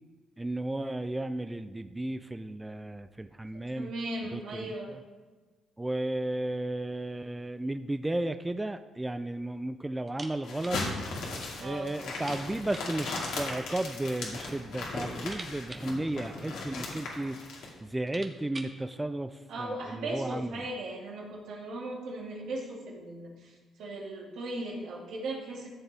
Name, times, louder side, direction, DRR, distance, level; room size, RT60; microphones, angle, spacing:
voice 1, 0.4-3.9 4.3-5.0 5.8-10.8 11.6-17.4 17.8-19.3 19.6-20.5, right 1 dB, 10° right, 9 dB, 0.4 m, -34 dB
voice 2, 3.8-4.9 11.6-11.9 19.5-23.5 23.8-25.7, right 2 dB, 80° right, -2 dB, 2.3 m, -37 dB
sound 1, 10.1-10.8 11.1-11.2 11.5-11.6 12.1-13.0 13.9-14.5 14.9-16.8 17.5-17.6 17.9-18.8, right 2 dB, 30° right, 1.2 m, -47 dB
sound 2, 10.4-17.7, left 3 dB, 85° left, 2.3 m, -37 dB
13.5 x 7.1 x 3.5 m, 1.3 s
cardioid pair, 90°, 0 cm